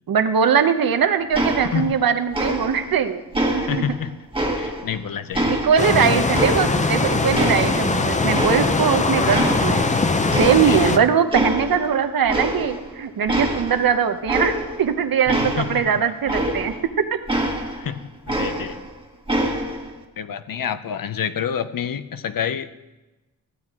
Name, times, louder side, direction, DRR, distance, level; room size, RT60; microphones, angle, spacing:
voice 1, 0.1-3.2 3.5-3.9 5.5-9.9 10.4-17.1 19.3-19.4, right 7 dB, 70° right, 8 dB, 0.8 m, -21 dB
sound 1, 1.3-2.1 2.3-3.0 3.3-5.0 5.3-7.0 7.3-9.0 9.3-10.0 10.3-11.0 11.3-11.9 12.3-12.9 13.3-16.9 17.3-18.9 19.3-19.9, right 1 dB, 15° right, 1.2 m, -25 dB
voice 2, 3.6-4.1 4.5-5.5 10.7-10.9 15.3-15.8 17.8-18.8 20.2-22.7, left 8 dB, 65° left, 12 dB, 0.6 m, -28 dB
sound 2, 5.8-11.0, left 3 dB, 20° left, 0.5 m, -21 dB
14.0 x 9.1 x 3.6 m, 1.1 s
wide cardioid pair, 170°, 37 cm